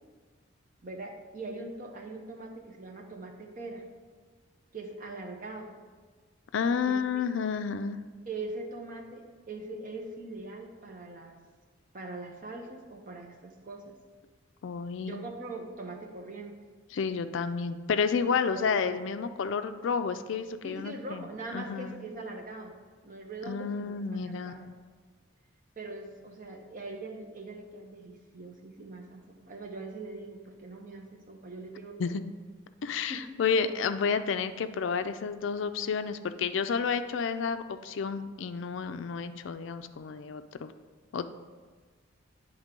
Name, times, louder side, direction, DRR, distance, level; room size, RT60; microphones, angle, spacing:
voice 1, 0.8-3.8 4.7-5.7 6.8-7.2 8.3-11.4 11.9-13.9 15.0-16.6 18.5-18.7 20.6-22.7 23.0-24.7 25.8-32.2 33.1-33.3, right 2 dB, 40° right, 2 dB, 0.9 m, -42 dB
voice 2, 6.5-8.0 14.6-15.2 16.9-21.3 21.5-22.0 23.5-24.7 32.0-32.1 32.8-40.7 41.1-41.3, left 6 dB, 65° left, 10 dB, 0.4 m, -30 dB
9.5 x 3.6 x 5.2 m, 1.5 s
head